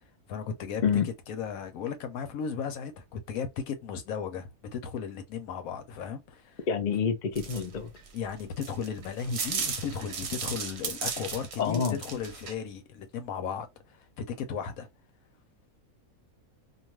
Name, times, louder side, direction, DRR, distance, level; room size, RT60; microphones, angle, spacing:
voice 1, 0.3-0.8 1.3-6.6 8.1-14.9, left 6 dB, 75° left, 1.1 m, -35 dB
voice 2, 6.7-7.9 11.6-12.0, left 6 dB, 55° left, 0.5 m, -27 dB
sound 1, 7.4-12.5, right 5 dB, 55° right, 0.8 m, -35 dB
2.5 x 2.3 x 2.9 m
omnidirectional pair, 1.5 m